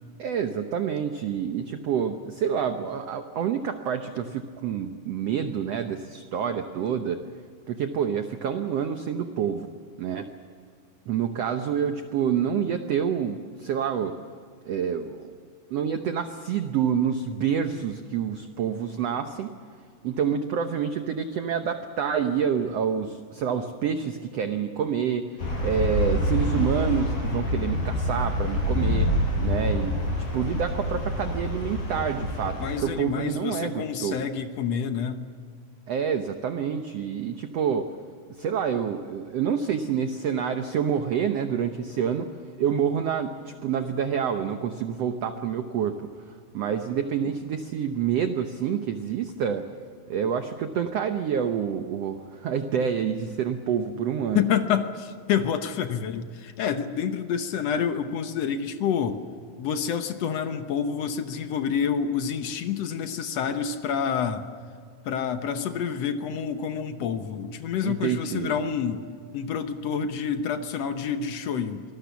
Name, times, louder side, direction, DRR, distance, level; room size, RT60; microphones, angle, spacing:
voice 1, 0.2-7.2 7.7-9.7 10.0-10.3 11.1-14.2 14.7-15.3 15.7-19.5 20.0-25.2 25.6-29.1 29.4-34.2 35.9-37.9 38.4-46.0 46.5-49.7 50.1-54.4 67.8-68.6, right 7 dB, 80° right, 7 dB, 1.4 m, -27 dB
sound 1, 25.4-32.8, left 1 dB, 90° left, 6.3 m, -26 dB
voice 2, 32.6-35.2 54.3-59.2 59.6-64.5 65.0-69.0 69.3-71.8, left 7 dB, 65° left, 8 dB, 1.6 m, -28 dB
25.5 x 19.5 x 7.1 m, 2.1 s
omnidirectional pair, 4.2 m